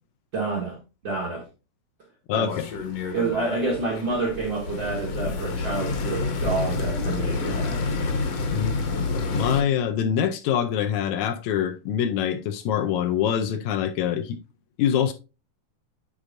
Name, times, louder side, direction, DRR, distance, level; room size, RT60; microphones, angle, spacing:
voice 1, 0.3-1.5 2.3-2.6 3.1-7.8, right 3 dB, 70° right, 1.1 m, -28 dB
voice 2, 2.3-2.7 8.5-8.8 9.3-14.4 14.8-15.1, left 9 dB, 80° left, 1.8 m, -24 dB
sound 1, 2.5-9.6, left 3 dB, 60° left, 1.9 m, -28 dB
9.7 x 4.2 x 2.6 m
omnidirectional pair, 3.6 m